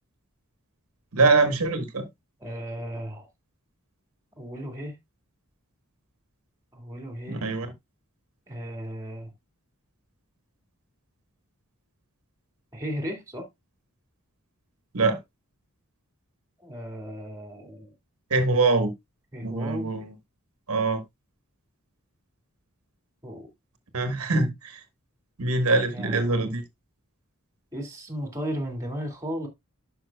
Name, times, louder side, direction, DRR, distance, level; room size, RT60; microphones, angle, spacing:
voice 1, 1.1-2.0 7.3-7.7 14.9-15.2 18.3-18.9 19.4-20.0 20.7-21.0 23.9-24.8 25.4-26.6, right 3 dB, 80° right, 1.3 m, -23 dB
voice 2, 2.4-3.3 4.4-5.0 6.7-7.5 8.5-9.3 12.7-13.5 16.6-17.9 19.3-19.9 23.2-23.5 25.9-26.5 27.7-29.5, equal, 15° right, 2.1 m, -35 dB
11.0 x 5.6 x 2.2 m
head